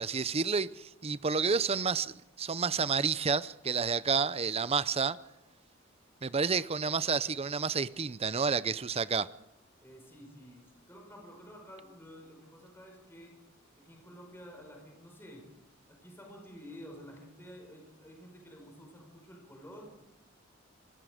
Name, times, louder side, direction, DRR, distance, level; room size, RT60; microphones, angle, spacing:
voice 1, 0.0-5.2 6.2-9.3, right 5 dB, 30° right, 0.6 m, -30 dB
voice 2, 9.8-13.3 13.8-15.5 15.9-20.0, equal, 10° left, 5.4 m, -51 dB
25.5 x 20.0 x 5.1 m
head